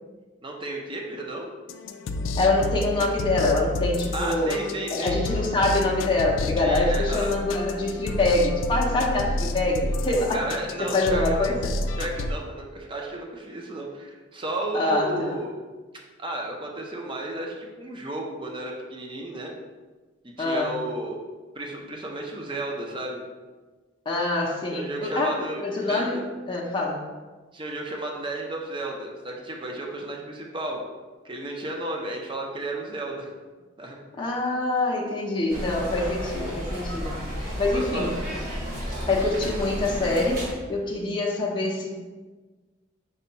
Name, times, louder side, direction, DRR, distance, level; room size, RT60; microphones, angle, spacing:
voice 1, 0.4-1.5 4.1-5.2 6.6-7.4 10.3-11.5 12.0-15.5 16.2-19.5 20.2-21.2 21.5-23.3 24.7-26.1 27.5-30.8 31.2-33.3 33.8-34.0 37.7-38.1, right 1 dB, 25° right, 0 dB, 0.6 m, -33 dB
sound 1, 1.7-12.3, left 2 dB, 85° left, 0.3 m, -30 dB
voice 2, 2.2-4.6 4.9-10.4 10.8-11.7 14.7-15.4 20.4-20.8 24.1-26.2 26.5-27.0 34.2-38.1 39.1-41.9, left 2 dB, 25° left, -3 dB, 0.5 m, -25 dB
sound 2, 35.5-40.5, equal, 50° right, 1.4 m, -32 dB
5.4 x 2.2 x 3.9 m, 1.3 s
head